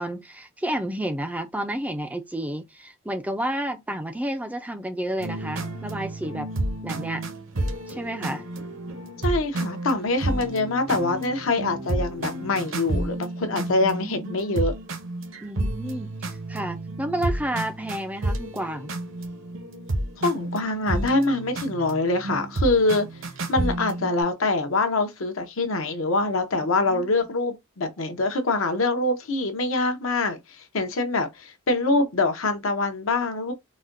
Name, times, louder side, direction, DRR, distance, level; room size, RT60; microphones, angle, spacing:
voice 1, 0.0-6.5 6.8-7.2 7.9-8.4 13.5-14.3 15.4-18.9 26.6-27.2, right 1 dB, 5° right, 0.3 m, -31 dB
sound 1, 5.2-24.2, right 1 dB, 65° right, 0.8 m, -31 dB
voice 2, 9.2-14.7 20.2-23.1 23.5-30.4 30.7-33.5, left 2 dB, 70° left, 0.7 m, -24 dB
4.1 x 2.2 x 2.5 m
head